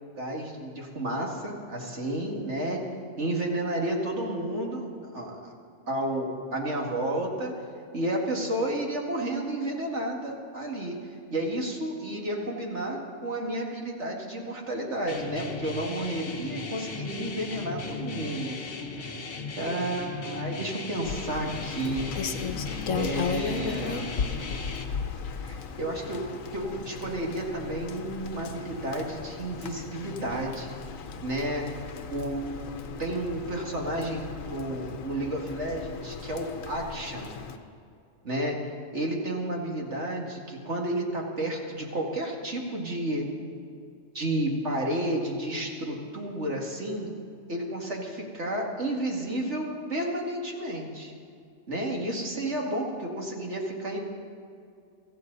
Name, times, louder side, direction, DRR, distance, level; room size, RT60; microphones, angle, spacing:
voice 1, 0.2-2.9 3.2-5.5 5.9-7.5 7.9-11.0 11.3-18.6 19.6-22.1 22.9-24.2 25.4-26.2 26.5-30.7 31.2-31.7 32.1-37.4 38.2-38.6 38.9-43.3 44.1-47.1 47.5-51.1 51.7-54.0, right 1 dB, 60° right, -1 dB, 2.5 m, -31 dB
sound 1, 15.1-24.8, left 3 dB, 60° left, 1.5 m, -37 dB
Rain, 21.0-37.6, left 6 dB, 80° left, 1.3 m, -36 dB
24.5 x 14.5 x 4.0 m, 2.4 s
omnidirectional pair, 1.4 m